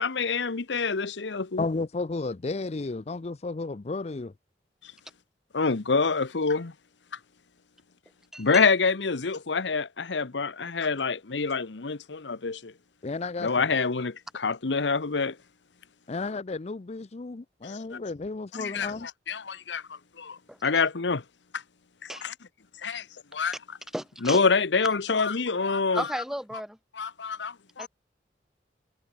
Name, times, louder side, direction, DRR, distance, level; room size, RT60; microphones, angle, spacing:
voice 1, 0.0-1.6 5.5-6.7 8.4-12.7 13.4-15.4 17.6-18.0 18.5-19.8 20.2-21.2 21.5-21.6 22.0-22.3 22.8-23.0 23.3-23.5 24.2-26.1 27.0-27.9, left 4 dB, 90° left, 1.0 m, -27 dB
voice 2, 1.6-4.3 13.0-13.7 16.1-19.1, left 3 dB, 35° left, 0.5 m, -33 dB
voice 3, 8.3-8.7 20.5-20.6 22.1-22.2 23.9-24.4 25.9-26.8 27.8-27.9, equal, ahead, 0.9 m, -34 dB
head